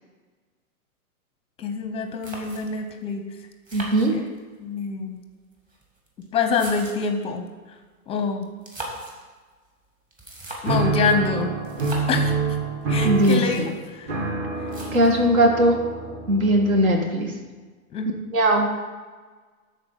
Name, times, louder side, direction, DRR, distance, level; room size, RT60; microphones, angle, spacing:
voice 1, 1.6-3.2 4.1-4.2 4.6-5.2 6.3-7.5 8.1-8.5 10.6-11.5 12.1-12.3 12.9-14.1 17.9-18.2, left 5 dB, 15° left, 6 dB, 0.7 m, -26 dB
sound 1, 1.8-1.9 2.2-2.9 3.7-4.6 5.5-7.2 8.5-9.2 10.1-10.9 11.6-12.3 12.8-12.9 13.1-13.8 14.7-15.3, right 1 dB, 20° right, 1.8 m, -39 dB
voice 2, 3.7-4.1 13.0-13.7 14.9-15.8 16.3-17.3 18.3-18.7, right 1 dB, 70° right, 2 dB, 2.2 m, -19 dB
sound 2, 10.6-17.1, right 4 dB, 40° right, 1.9 m, -27 dB
12.5 x 4.3 x 5.8 m, 1.4 s
hypercardioid pair, 135°, 43 cm